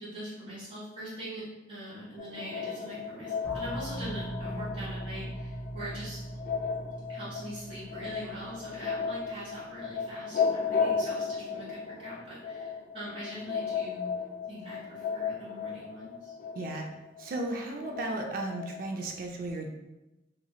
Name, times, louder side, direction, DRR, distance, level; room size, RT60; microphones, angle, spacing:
voice 1, 0.0-6.2 7.1-14.1 14.5-16.3, right 1 dB, 35° right, -14 dB, 1.4 m, -42 dB
sound 1, 2.2-18.9, left 6 dB, 45° left, 0.3 m, -35 dB
sound 2, 3.4-9.8, right 1 dB, 5° right, 1.1 m, -40 dB
voice 2, 16.5-16.9 17.2-19.7, right 2 dB, 50° right, 2 dB, 0.3 m, -35 dB
3.0 x 2.8 x 2.2 m, 1.0 s
head